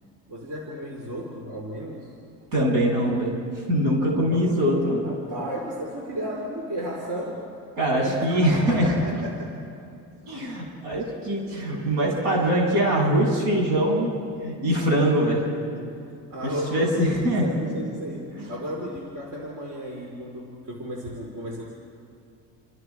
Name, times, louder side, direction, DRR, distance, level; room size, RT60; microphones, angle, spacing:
voice 1, 0.3-2.1 4.2-4.7 5.0-7.4 8.0-9.5 16.3-21.7, equal, 50° right, -1 dB, 4.1 m, -34 dB
voice 2, 2.5-3.3 3.7-5.0 7.8-9.0 10.2-14.1 14.4-15.5 16.7-17.5 18.3-18.5, equal, 75° right, -1 dB, 7.9 m, -23 dB
29.5 x 26.0 x 4.9 m, 2.4 s
supercardioid pair, 95°, 39 cm